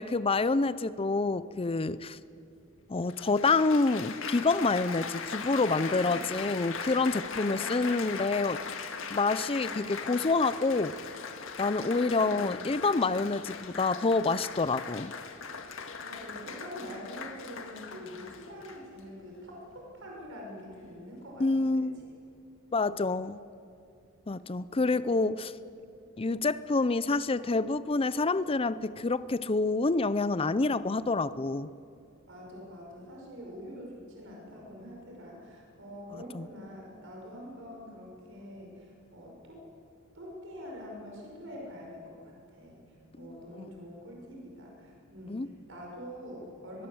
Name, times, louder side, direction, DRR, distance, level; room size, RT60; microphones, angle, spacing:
voice 1, 0.0-2.2 2.9-8.6 9.1-10.9 11.6-15.1 21.4-22.0 22.7-23.4 24.3-25.5 26.2-31.7 36.3-36.5 45.3-45.5, left 3 dB, 25° left, 16 dB, 0.5 m, -27 dB
Applause, 2.3-2.4 3.1-19.0 19.7-20.1, left 5 dB, 70° left, 1.8 m, -39 dB
voice 2, 5.3-6.3 7.3-7.9 9.6-10.1 11.8-12.5 15.7-22.1 24.7-25.3 32.3-39.6 40.1-46.9, equal, 65° right, -1 dB, 5.9 m, -45 dB
23.0 x 21.5 x 7.9 m, 2.5 s
head